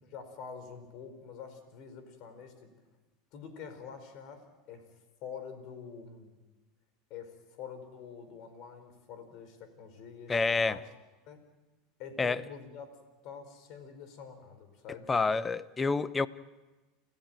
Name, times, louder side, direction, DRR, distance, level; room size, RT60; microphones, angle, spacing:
voice 1, 0.0-2.7 3.3-4.8 5.2-6.4 7.1-10.9 11.3-11.4 12.0-12.9 13.2-15.2, left 6 dB, 55° left, 9 dB, 5.1 m, -46 dB
voice 2, 10.3-10.8 12.2-12.4 15.1-16.3, left 4 dB, 20° left, 17 dB, 0.9 m, -28 dB
29.5 x 14.5 x 9.1 m, 1.2 s
hypercardioid pair, 100°, 0 cm